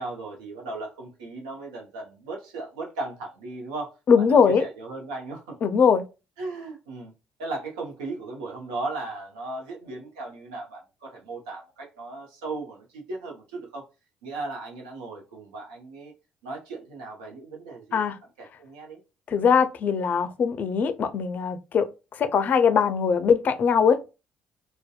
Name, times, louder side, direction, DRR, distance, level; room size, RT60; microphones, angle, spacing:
voice 1, 0.0-3.9 4.2-5.6 6.4-7.1 7.4-13.9 14.2-16.1 16.4-18.0 18.4-19.0, right 3 dB, 90° right, 0.7 m, -36 dB
voice 2, 4.1-4.6 5.6-6.0 17.9-18.2 19.3-24.0, left 6 dB, 55° left, 0.4 m, -21 dB
2.6 x 2.1 x 2.2 m
hypercardioid pair, 55°, 3 cm